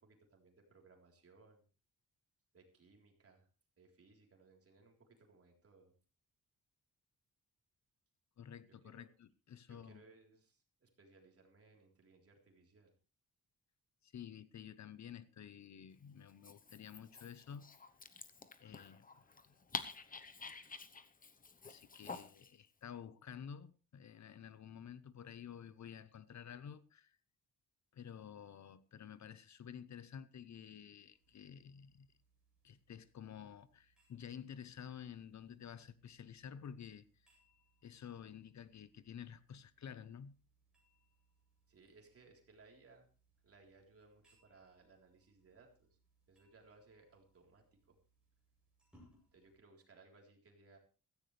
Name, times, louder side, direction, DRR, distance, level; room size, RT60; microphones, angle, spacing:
voice 1, 0.0-1.7 2.5-3.5 3.8-5.9 8.7-9.1 9.7-12.9 41.7-43.1 43.4-45.9 46.3-48.0 49.3-50.8, right 3 dB, 45° right, 3.8 m, -64 dB
voice 2, 8.4-10.0 14.0-17.7 18.6-19.6 21.6-27.2 27.9-32.1 32.6-37.0 37.8-40.4, left 8 dB, 55° left, 0.8 m, -51 dB
Dog, 16.3-22.5, left 4 dB, 25° left, 0.9 m, -49 dB
sound 1, 31.1-49.6, right 1 dB, ahead, 7.9 m, -74 dB
16.0 x 14.5 x 3.3 m
wide cardioid pair, 175°, 33 cm